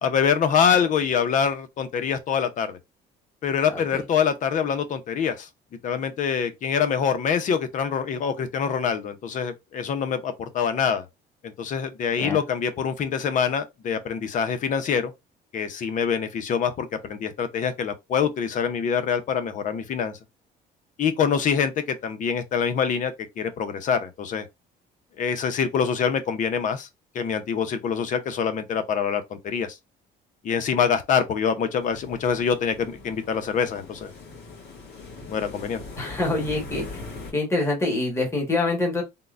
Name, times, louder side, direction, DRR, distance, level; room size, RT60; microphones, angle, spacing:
voice 1, 0.0-2.8 3.4-5.5 5.8-11.0 11.4-15.1 15.5-20.2 21.0-24.5 25.2-26.9 27.1-29.8 30.4-34.1 35.3-35.8, left 7 dB, 50° left, 0.6 m, -25 dB
voice 2, 3.7-4.0 12.2-12.4 35.9-37.0 37.3-39.0, left 2 dB, 15° left, 1.3 m, -25 dB
sound 1, 31.8-37.3, left 3 dB, 75° left, 1.8 m, -40 dB
3.7 x 2.1 x 2.4 m
cardioid pair, 110°, 17 cm